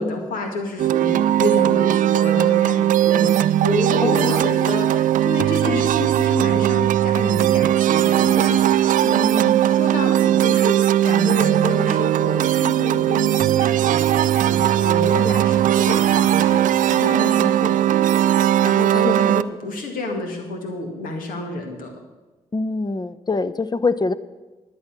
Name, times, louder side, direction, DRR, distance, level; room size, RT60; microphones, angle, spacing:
voice 1, 0.0-21.9, left 2 dB, 80° left, 3 dB, 2.0 m, -29 dB
sound 1, 0.8-19.4, right 12 dB, 70° right, 0.4 m, -18 dB
voice 2, 4.0-4.5 5.7-5.9 15.6-16.0 19.0-19.3 22.5-24.1, left 3 dB, 30° left, 15 dB, 0.7 m, -25 dB
11.5 x 8.5 x 6.0 m, 1.2 s
supercardioid pair, 45°, 14 cm